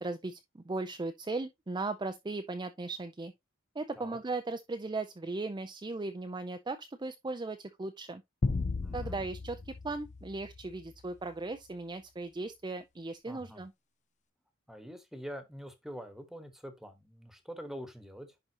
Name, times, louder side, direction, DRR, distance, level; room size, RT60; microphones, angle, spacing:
voice 1, 0.0-3.3 3.7-8.2 8.9-13.7, right 3 dB, 20° right, 0.5 m, -37 dB
sound 1, 8.4-11.0, left 3 dB, 35° left, 0.5 m, -35 dB
voice 2, 8.8-9.3 13.3-13.6 14.7-18.3, equal, ahead, 1.3 m, -45 dB
11.0 x 3.9 x 2.9 m
head